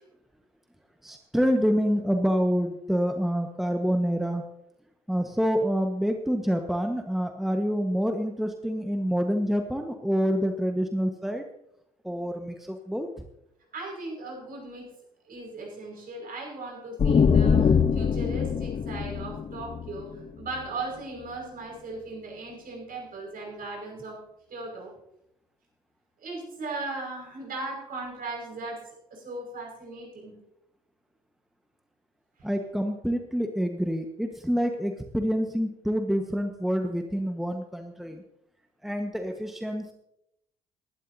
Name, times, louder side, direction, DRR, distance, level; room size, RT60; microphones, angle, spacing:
voice 1, 1.0-4.4 5.1-11.4 12.0-13.1 32.4-38.2 38.8-39.9, equal, ahead, 5 dB, 1.3 m, -27 dB
voice 2, 13.7-14.9 15.3-20.1 20.4-24.2 24.5-24.9 26.2-30.4, right 2 dB, 50° right, 0 dB, 5.7 m, -37 dB
sound 1, 17.0-20.6, left 6 dB, 35° left, 0.8 m, -23 dB
21.0 x 12.0 x 2.8 m, 0.79 s
hypercardioid pair, 50°, 19 cm